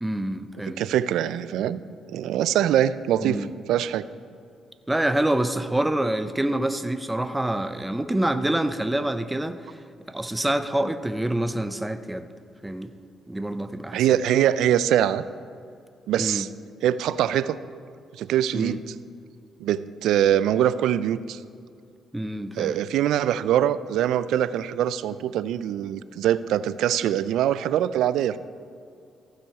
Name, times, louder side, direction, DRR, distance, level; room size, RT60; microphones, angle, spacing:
voice 1, 0.0-0.8 3.2-3.5 4.9-9.6 10.1-12.3 12.6-12.9 13.3-14.0 16.2-16.4 18.5-18.8 22.1-22.7, right 1 dB, 10° right, 10 dB, 0.5 m, -26 dB
voice 2, 0.8-1.8 2.1-4.0 13.9-15.2 16.1-16.5 16.8-17.6 18.2-18.9 19.6-21.4 22.6-28.4, right 11 dB, 85° right, 16 dB, 0.3 m, -23 dB
15.0 x 6.1 x 4.7 m, 2.4 s
cardioid pair, 90°, 0 cm